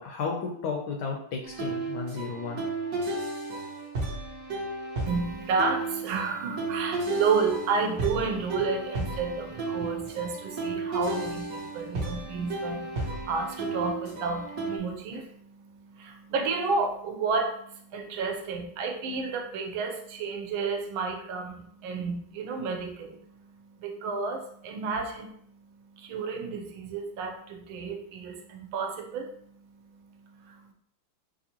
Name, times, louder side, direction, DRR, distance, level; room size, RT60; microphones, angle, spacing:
voice 1, 0.0-2.6, left 5 dB, 70° left, 1 dB, 1.0 m, -33 dB
sound 1, 1.4-14.8, right 2 dB, 55° right, 1.2 m, -33 dB
voice 2, 5.1-30.7, right 4 dB, 80° right, 3 dB, 1.5 m, -31 dB
5.4 x 2.6 x 2.9 m, 0.67 s
omnidirectional pair, 2.2 m